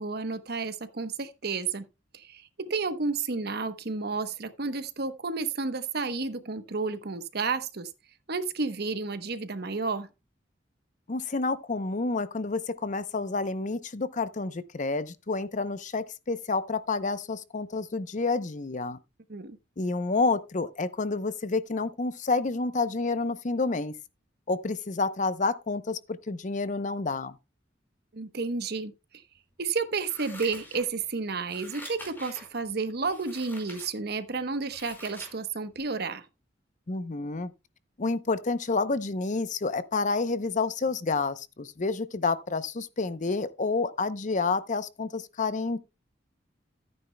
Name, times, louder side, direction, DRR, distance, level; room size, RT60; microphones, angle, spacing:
voice 1, 0.0-1.8 2.1-7.9 8.3-10.1 19.3-19.6 28.1-28.9 29.6-36.2, right 4 dB, 60° right, 1.0 m, -31 dB
voice 2, 11.1-19.0 19.8-23.9 24.5-27.4 36.9-37.5 38.0-45.8, left 3 dB, 40° left, 0.7 m, -29 dB
Scissors, 30.0-31.1 31.4-32.5 33.1-33.9 34.3-35.4 35.8-35.9, left 1 dB, 10° left, 4.8 m, -45 dB
14.0 x 9.7 x 2.2 m
head